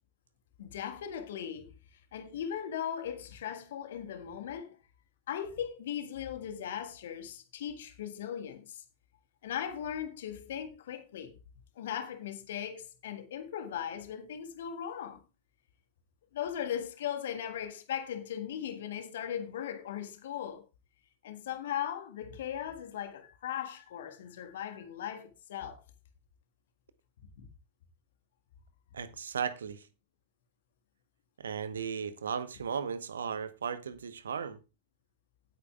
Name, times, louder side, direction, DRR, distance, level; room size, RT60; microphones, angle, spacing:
voice 1, 0.6-1.7 2.1-4.8 5.3-8.8 9.4-11.4 11.7-15.2 16.3-20.7 21.2-25.8 27.4-27.5, left 9 dB, 60° left, 1.6 m, -38 dB
voice 2, 28.9-29.9 31.4-34.6, right 7 dB, 70° right, 1.0 m, -36 dB
17.0 x 8.4 x 2.3 m
figure-of-eight pair, 90°, 0 cm